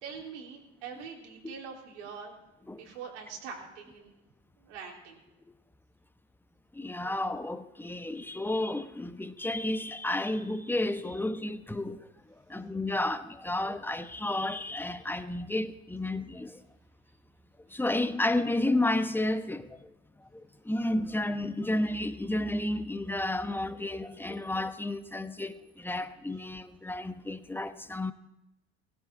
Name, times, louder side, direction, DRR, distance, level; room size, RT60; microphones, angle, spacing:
voice 1, 0.0-2.3 2.7-4.1 4.6-5.2 17.7-17.8, right 6 dB, 80° right, 3.8 m, -43 dB
voice 2, 6.7-12.0 12.5-16.6 17.7-19.9 20.3-28.1, left 1 dB, 5° left, 1.0 m, -31 dB
17.5 x 15.5 x 4.5 m
hypercardioid pair, 80°, 35 cm